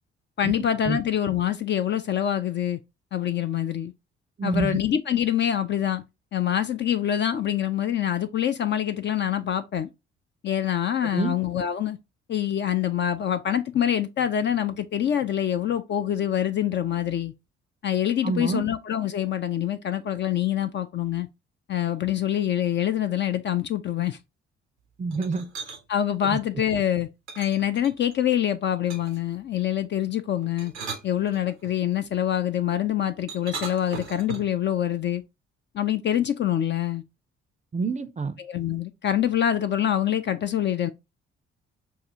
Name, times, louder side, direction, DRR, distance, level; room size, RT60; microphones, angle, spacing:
voice 1, 0.4-2.8 3.1-3.9 4.4-6.0 6.3-9.9 10.4-12.0 12.3-17.3 17.8-21.3 21.7-24.2 25.9-27.1 27.4-30.7 31.0-35.2 35.7-37.0 38.4-40.9, left 10 dB, 35° left, 0.4 m, -25 dB
voice 2, 4.4-4.8 11.1-11.3 18.2-18.6 25.0-25.5 26.3-26.4 37.7-38.4, right 4 dB, 20° right, 0.5 m, -27 dB
sound 1, 25.1-25.8 27.3-28.2 28.9-29.3 30.4-31.8 33.3-34.6, right 5 dB, 85° right, 0.7 m, -38 dB
6.4 x 2.3 x 2.7 m
figure-of-eight pair, 45°, 33 cm